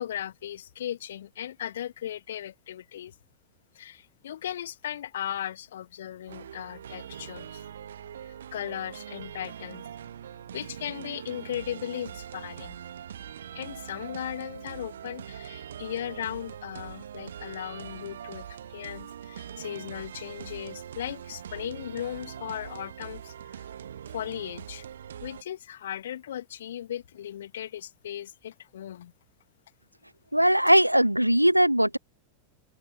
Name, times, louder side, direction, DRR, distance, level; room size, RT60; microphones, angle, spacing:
voice 1, 0.0-3.1 3.7-7.6 8.5-9.8 10.5-12.8 13.5-23.7 24.1-24.9 25.2-29.1, left 11 dB, 60° left, 1.0 m, -37 dB
sound 1, 6.3-25.4, right 9 dB, 65° right, 1.1 m, -42 dB
voice 2, 30.3-32.0, equal, 90° right, 0.5 m, -20 dB
open air
figure-of-eight pair, 90°, 0 cm